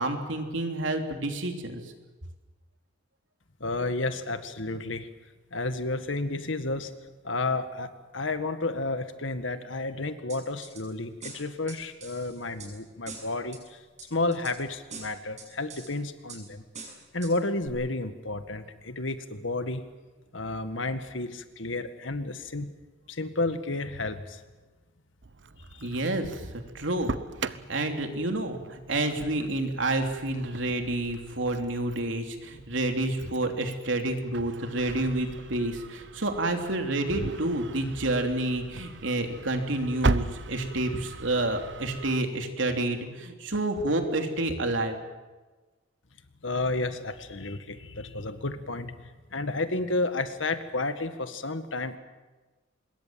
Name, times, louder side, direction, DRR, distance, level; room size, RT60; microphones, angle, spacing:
voice 1, 0.0-1.9 25.8-27.1 27.5-45.0, right 2 dB, 85° right, 4 dB, 3.2 m, -29 dB
voice 2, 3.6-5.1 5.5-6.9 7.2-13.8 14.1-16.7 17.1-19.8 20.3-22.7 23.1-24.4 25.7-25.9 46.4-49.0 49.3-52.0, left 2 dB, 85° left, 9 dB, 1.9 m, -31 dB
sound 1, 10.3-10.8 11.2-12.7 13.1-13.6 14.0-14.6 14.9-15.9 16.3-16.4 16.7-17.3 17.7-17.8, right 4 dB, 40° right, 6.7 m, -43 dB
Engine starting, 25.2-42.2, right 3 dB, 65° right, 0.8 m, -38 dB
25.0 x 21.5 x 7.7 m, 1.3 s
head